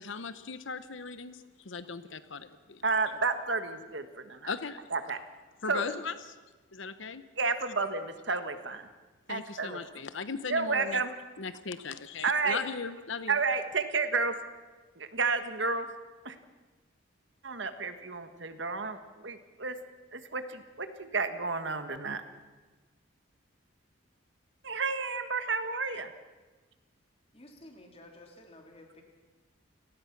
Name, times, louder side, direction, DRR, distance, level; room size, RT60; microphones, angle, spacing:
voice 1, 0.0-2.8 4.5-4.8 5.6-6.2 6.7-7.2 9.3-11.0 11.4-13.4, left 5 dB, 70° left, 12 dB, 0.9 m, -38 dB
voice 2, 2.8-4.5 4.9-5.2 5.7-5.8 7.4-8.9 9.3-10.0 10.5-11.1 12.2-12.6 13.3-14.3 15.0-15.9 16.2-16.4 17.4-19.8 20.1-22.2 24.6-26.1, right 4 dB, 60° right, 9 dB, 1.5 m, -31 dB
voice 3, 27.3-29.0, left 1 dB, 30° left, 2 dB, 3.3 m, -52 dB
29.5 x 18.5 x 6.0 m, 1.3 s
head